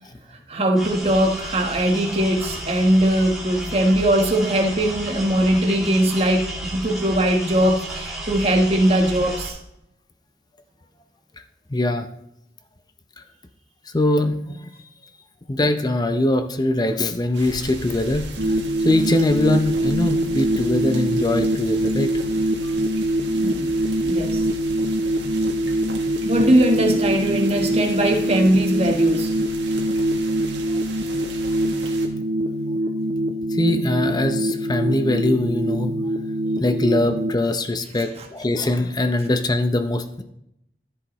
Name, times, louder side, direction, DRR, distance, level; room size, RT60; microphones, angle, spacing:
voice 1, 0.5-9.6 23.3-23.7 24.0-24.4 26.2-29.3 38.2-38.3, right 1 dB, 35° right, 1 dB, 1.2 m, -20 dB
sound 1, 0.8-9.5, right 1 dB, ahead, 2.4 m, -33 dB
voice 2, 11.7-12.1 13.9-14.7 15.5-18.3 18.8-22.1 33.5-35.9 36.6-40.2, left 1 dB, 25° left, 8 dB, 0.6 m, -22 dB
sound 2, 17.3-32.1, right 3 dB, 90° right, 1.6 m, -38 dB
sound 3, 18.4-37.3, right 1 dB, 70° right, 0.7 m, -24 dB
13.5 x 7.8 x 3.1 m, 0.80 s
head